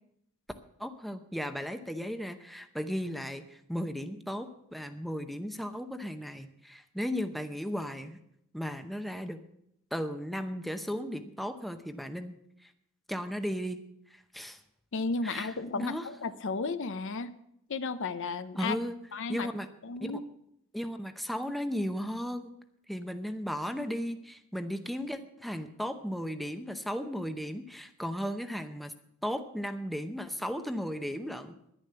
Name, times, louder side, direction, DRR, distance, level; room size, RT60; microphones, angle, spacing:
voice 1, 0.8-8.2 8.5-9.4 9.9-12.3 12.6-12.7 13.1-13.8 14.1-14.6 15.2-16.1 18.6-19.0 19.3-19.7 20.0-20.2 20.7-22.5 22.9-28.9 29.2-31.6, equal, ahead, 8 dB, 0.7 m, -35 dB
voice 2, 14.9-17.4 17.7-18.8 19.1-19.5 19.8-20.2, left 4 dB, 60° left, 12 dB, 0.7 m, -33 dB
11.0 x 10.5 x 6.8 m, 0.76 s
head